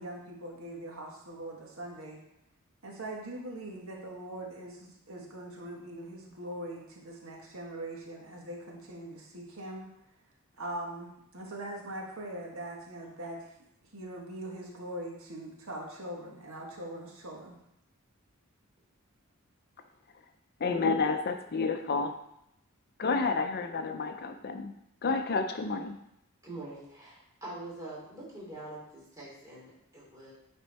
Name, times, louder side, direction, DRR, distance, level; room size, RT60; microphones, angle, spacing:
voice 1, 0.0-2.2 2.8-9.9 10.6-13.5 13.9-17.6, right 1 dB, 75° right, -1 dB, 1.6 m, -41 dB
voice 2, 20.6-22.1 23.0-24.7 25.0-26.0, left 4 dB, 50° left, 7 dB, 0.6 m, -30 dB
voice 3, 26.4-30.3, right 2 dB, 15° right, -6 dB, 3.0 m, -44 dB
9.6 x 4.4 x 4.1 m, 0.80 s
head